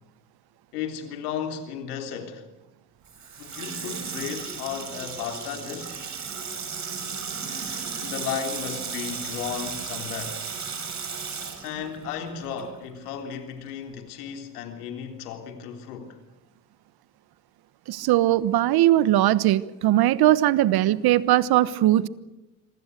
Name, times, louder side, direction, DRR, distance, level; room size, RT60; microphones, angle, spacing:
voice 1, 0.7-2.5 3.4-5.9 8.0-10.5 11.6-16.2, left 7 dB, 80° left, 3.7 m, -34 dB
Water tap faucet / Sink (filling or washing), 3.0-12.8 13.1-13.2, right 6 dB, 40° right, 6.5 m, -35 dB
voice 2, 17.9-22.1, right 14 dB, 55° right, 1.2 m, -20 dB
27.0 x 24.0 x 6.6 m
hypercardioid pair, 65°, 45 cm